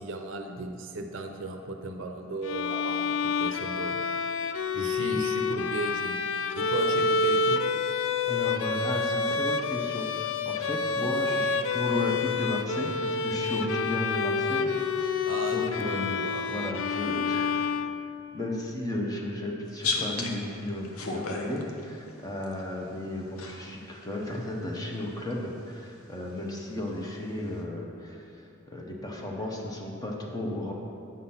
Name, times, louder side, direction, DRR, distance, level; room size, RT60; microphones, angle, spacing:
voice 1, 0.0-4.0 4.7-6.2 6.5-7.6 15.3-16.4, right 2 dB, 60° right, 4 dB, 0.6 m, -35 dB
Bowed string instrument, 2.4-18.4, left 4 dB, 60° left, 0.3 m, -28 dB
voice 2, 8.3-14.7 15.0-15.2 15.5-17.6 18.3-30.7, left 1 dB, 15° left, -1 dB, 0.7 m, -34 dB
sound 1, 19.7-22.6 23.4-23.9 24.2-25.4 26.3-26.4 26.9-27.1, left 3 dB, 80° left, 0.8 m, -34 dB
8.6 x 4.0 x 5.6 m, 2.6 s
head